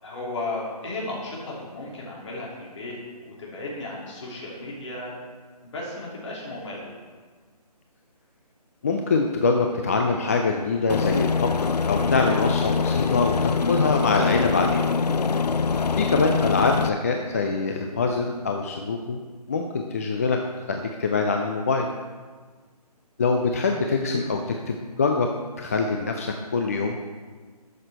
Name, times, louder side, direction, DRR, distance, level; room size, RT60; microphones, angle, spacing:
voice 1, 0.0-3.0 3.2-5.1 5.6-7.0, left 2 dB, 45° left, -4 dB, 3.5 m, -35 dB
voice 2, 8.8-14.8 16.0-19.2 19.5-20.4 20.7-21.9 23.2-25.3 25.6-27.0, left 4 dB, 25° left, 3 dB, 0.4 m, -24 dB
Aircraft, 10.9-16.9, left 5 dB, 80° left, 0.6 m, -24 dB
13.0 x 6.5 x 4.4 m, 1.5 s
figure-of-eight pair, 150°, 21 cm